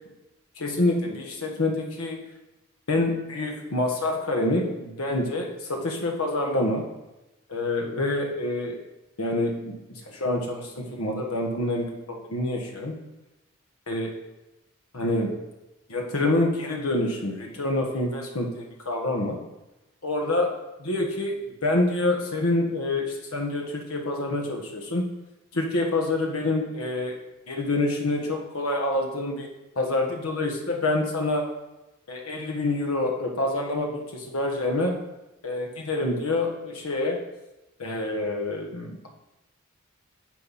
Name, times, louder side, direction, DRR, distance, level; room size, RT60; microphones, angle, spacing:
voice 1, 0.6-2.2 2.9-6.9 7.5-8.8 9.2-13.0 13.9-14.2 14.9-15.3 15.9-19.4 20.0-20.5 20.8-25.1 25.5-27.2 27.5-29.5 29.7-31.5 32.1-35.0 35.4-37.2 37.8-39.1, left 2 dB, 90° left, 2 dB, 1.5 m, -27 dB
9.0 x 6.7 x 4.2 m, 0.99 s
head